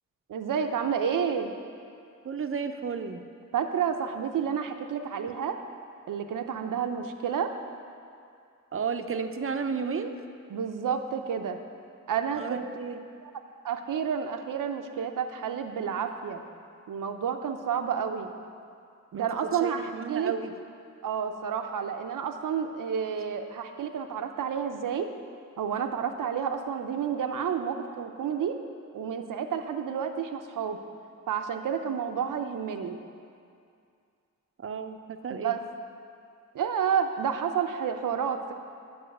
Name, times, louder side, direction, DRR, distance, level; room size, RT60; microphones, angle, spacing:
voice 1, 0.3-1.5 3.5-5.6 6.1-7.5 10.5-11.6 12.1-12.6 13.2-13.3 13.6-16.4 16.9-18.3 19.1-20.3 21.0-25.1 25.6-28.6 28.9-30.8 31.3-33.0 35.3-35.6 36.5-38.5, right 7 dB, 80° right, 6 dB, 0.7 m, -30 dB
voice 2, 2.2-3.2 8.7-10.2 12.3-13.0 19.1-19.3 19.6-20.6 34.6-35.6, right 6 dB, 45° right, 8 dB, 0.6 m, -33 dB
7.9 x 5.6 x 7.7 m, 2.4 s
wide cardioid pair, 90°, 32 cm